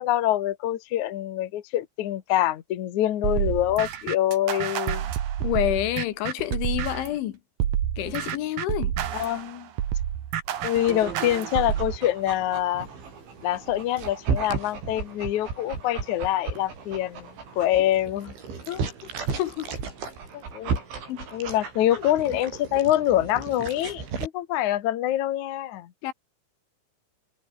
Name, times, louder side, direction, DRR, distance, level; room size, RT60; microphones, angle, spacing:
voice 1, 0.0-5.0 9.1-9.7 10.6-12.9 13.4-17.3 17.6-18.3 18.7-18.8 20.3-20.8 21.3-25.9, left 13 dB, 60° left, 2.0 m, -25 dB
sound 1, 3.2-7.2 7.6-12.0, right 10 dB, 55° right, 3.2 m, -29 dB
voice 2, 5.4-7.4 8.0-8.9 19.4-19.7 21.1-21.3 26.0-26.1, left 14 dB, 80° left, 3.9 m, -28 dB
Dog, 10.5-24.3, right 5 dB, 75° right, 9.4 m, -35 dB
omnidirectional pair, 5.4 m